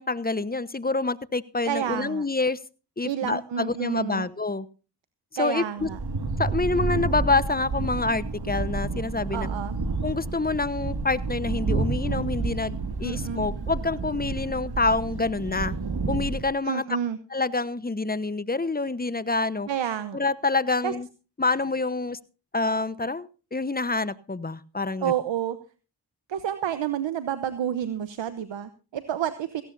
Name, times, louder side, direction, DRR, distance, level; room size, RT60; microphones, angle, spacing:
voice 1, 0.0-2.6 3.0-4.7 5.4-5.9 6.4-9.5 10.0-15.7 16.1-16.8 17.3-19.7 20.1-21.1 21.4-22.2 22.5-25.1, left 3 dB, 20° left, 16 dB, 1.0 m, -27 dB
voice 2, 1.6-2.3 3.0-4.3 5.4-6.0 9.3-9.8 13.0-13.4 16.6-17.2 19.7-20.2 20.8-20.9 25.0-25.6 26.3-29.6, right 9 dB, 70° right, 12 dB, 1.0 m, -29 dB
sound 1, 5.8-16.5, right 3 dB, 55° right, 2.1 m, -30 dB
17.5 x 15.5 x 2.6 m, 0.34 s
supercardioid pair, 40°, 45 cm